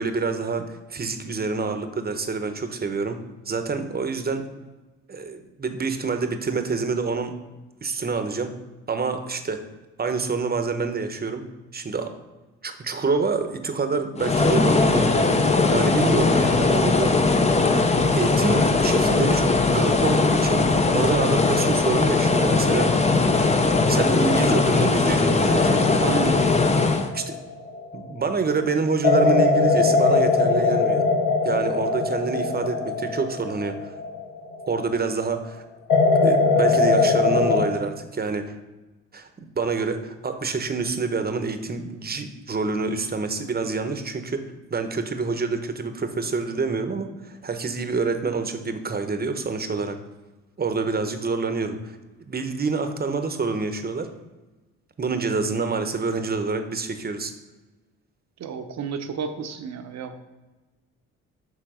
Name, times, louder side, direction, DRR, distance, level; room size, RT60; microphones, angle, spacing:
voice 1, 0.0-4.5 5.1-7.4 7.8-8.6 8.9-9.6 10.0-12.1 12.6-15.4 15.7-17.4 17.6-17.8 18.1-23.1 23.4-26.0 27.1-27.4 27.9-31.0 31.4-33.9 34.7-35.6 36.2-38.5 39.1-50.0 50.6-52.0 52.3-54.1 55.0-57.3, right 4 dB, 30° right, 8 dB, 0.9 m, -27 dB
sound 1, 14.2-27.1, left 3 dB, 20° left, 0.7 m, -20 dB
sound 2, 25.4-28.1 29.0-34.8 35.9-37.7, left 3 dB, 75° left, 1.1 m, -21 dB
voice 2, 26.0-26.4 58.4-60.2, right 6 dB, 55° right, 7 dB, 0.8 m, -31 dB
7.0 x 3.4 x 5.0 m, 1.2 s
supercardioid pair, 70°, 32 cm